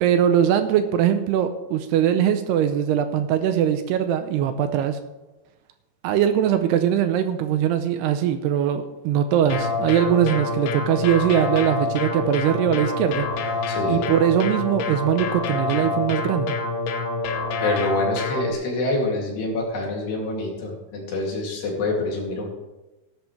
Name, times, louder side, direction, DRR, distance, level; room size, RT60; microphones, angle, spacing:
voice 1, 0.0-5.0 6.0-13.3 13.9-16.6, right 9 dB, 80° right, 9 dB, 2.6 m, -21 dB
sound 1, 9.5-18.5, left 3 dB, 85° left, 3.3 m, -26 dB
voice 2, 13.7-14.1 17.6-22.5, left 2 dB, 70° left, -1 dB, 4.6 m, -26 dB
17.0 x 11.5 x 3.3 m, 1.1 s
omnidirectional pair, 5.0 m